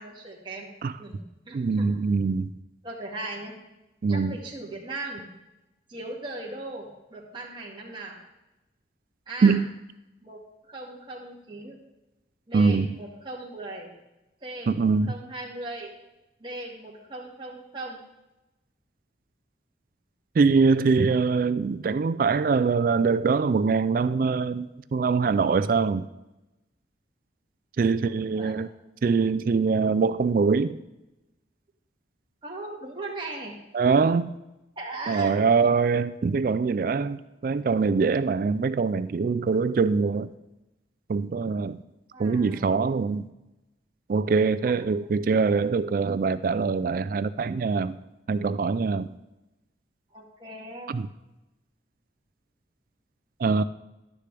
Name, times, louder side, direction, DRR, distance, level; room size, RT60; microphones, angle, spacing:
voice 1, 0.0-0.7 1.0-1.9 2.8-3.5 4.1-5.3 5.9-8.2 9.3-9.6 10.2-10.4 10.7-11.8 12.5-14.0 14.4-15.9 16.4-18.0 27.9-28.6 32.4-33.5 34.8-35.4 42.1-42.8 44.7-44.8 50.1-50.9, right 2 dB, 25° right, -3 dB, 2.0 m, -38 dB
voice 2, 1.5-2.5 4.0-4.4 9.4-9.7 12.5-13.0 14.7-15.2 20.4-26.1 27.8-28.7 29.0-30.8 33.7-34.3 35.1-40.3 41.1-41.8 42.2-43.3 44.1-48.0 48.3-49.1 50.9-51.1 53.4-53.6, right 4 dB, 50° right, 14 dB, 0.3 m, -23 dB
11.5 x 9.9 x 3.3 m, 0.99 s
head